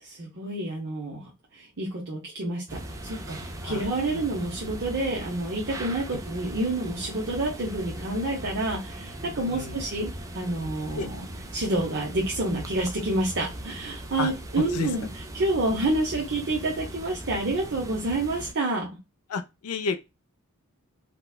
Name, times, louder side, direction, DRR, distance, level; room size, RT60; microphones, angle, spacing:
voice 1, 0.0-3.4 3.6-11.2 11.5-18.9, right 2 dB, 50° right, 0.8 m, -29 dB
sound 1, 2.7-18.5, right 1 dB, 15° right, 0.5 m, -39 dB
voice 2, 14.6-14.9 19.3-20.0, left 5 dB, 75° left, 0.5 m, -30 dB
4.0 x 2.2 x 2.3 m
head